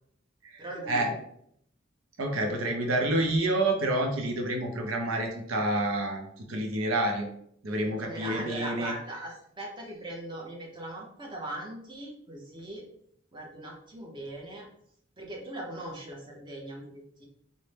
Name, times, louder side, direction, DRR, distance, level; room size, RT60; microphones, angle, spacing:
voice 1, 0.6-1.2 7.8-12.8 13.3-14.7 15.2-17.2, right 1 dB, 25° right, -2 dB, 0.7 m, -40 dB
voice 2, 2.2-7.3 7.6-8.9, right 1 dB, 80° right, 2 dB, 0.6 m, -28 dB
4.1 x 2.1 x 3.3 m, 0.68 s
head